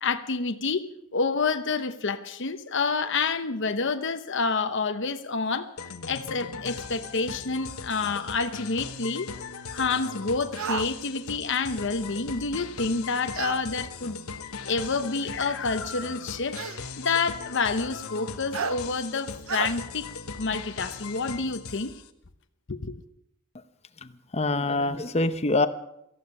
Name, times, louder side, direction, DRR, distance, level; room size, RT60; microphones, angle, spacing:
voice 1, 0.0-0.9 1.1-5.7 6.0-9.3 9.7-14.2 14.7-20.1 20.3-21.9 22.7-23.0, left 4 dB, 55° left, 9 dB, 0.9 m, -28 dB
sound 1, 5.8-22.1, left 4 dB, 85° left, 1.2 m, -39 dB
sound 2, 10.6-10.9 13.3-13.6 14.9-15.0 16.5-16.8 18.5-18.8 19.5-19.7, right 6 dB, 70° right, 0.7 m, -31 dB
voice 2, 24.0-25.7, left 2 dB, 30° left, 11 dB, 0.8 m, -25 dB
18.0 x 14.5 x 5.4 m, 0.80 s
head